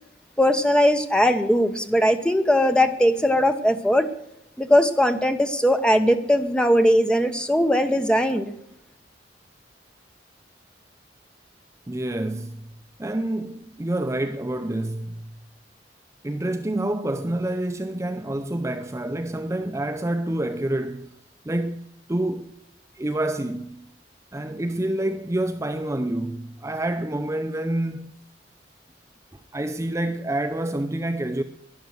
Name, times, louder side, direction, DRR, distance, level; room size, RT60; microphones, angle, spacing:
voice 1, 0.4-4.1 4.6-8.5, equal, 5° left, 1.0 m, -20 dB
voice 2, 11.9-12.6 13.0-15.2 16.2-21.1 21.5-21.8 22.1-22.5 22.9-23.9 24.3-28.1 29.5-31.4, right 1 dB, 15° right, 0.6 m, -27 dB
12.0 x 11.0 x 7.7 m
head